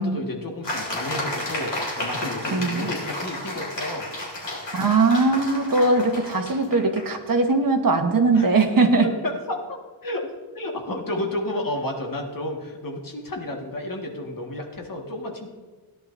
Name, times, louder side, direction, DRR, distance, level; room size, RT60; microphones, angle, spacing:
voice 1, 0.0-4.1 8.3-8.6 9.0-9.8 10.0-10.3 10.5-15.5, left 1 dB, 45° left, 1 dB, 1.7 m, -31 dB
sound 1, 0.6-7.1, left 1 dB, 60° left, 3.4 m, -32 dB
voice 2, 2.5-2.9 4.7-9.1, right 3 dB, 45° right, 5 dB, 1.2 m, -20 dB
17.0 x 11.0 x 2.6 m, 1.4 s
wide cardioid pair, 140°, 47 cm